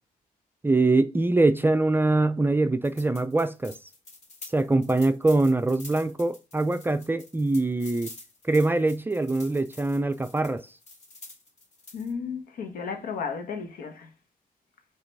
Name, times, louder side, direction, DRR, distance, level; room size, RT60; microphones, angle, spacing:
voice 1, 0.6-3.8 4.5-8.1 8.4-10.7, right 2 dB, 15° right, 0.5 m, -23 dB
sound 1, 2.8-12.1, left 2 dB, 50° left, 3.2 m, -48 dB
voice 2, 11.9-14.1, left 5 dB, 80° left, 1.4 m, -34 dB
5.6 x 4.0 x 5.4 m
cardioid pair, 100°, 14 cm